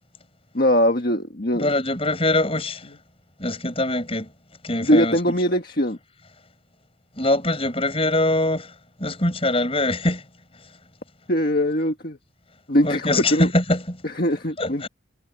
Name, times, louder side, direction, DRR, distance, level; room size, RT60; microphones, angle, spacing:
voice 1, 0.5-1.7 4.8-6.0 11.3-12.2 12.7-13.5 14.0-14.9, equal, 50° left, 1.7 m, -21 dB
voice 2, 1.5-2.9 3.4-4.3 4.6-5.2 7.2-8.7 9.0-10.2 12.8-14.0 14.6-14.9, left 1 dB, 30° left, 7.7 m, -23 dB
head